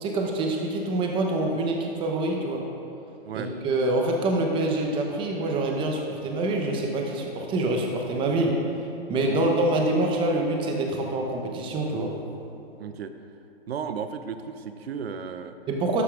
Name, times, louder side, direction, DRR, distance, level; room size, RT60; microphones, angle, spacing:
voice 1, 0.0-2.6 3.3-8.5 9.1-12.1 15.7-16.0, right 2 dB, 15° right, 1 dB, 0.8 m, -26 dB
voice 2, 12.8-13.1 13.7-15.6, right 7 dB, 70° right, 9 dB, 0.6 m, -34 dB
12.0 x 8.3 x 2.5 m, 2.7 s
hypercardioid pair, 135°, 32 cm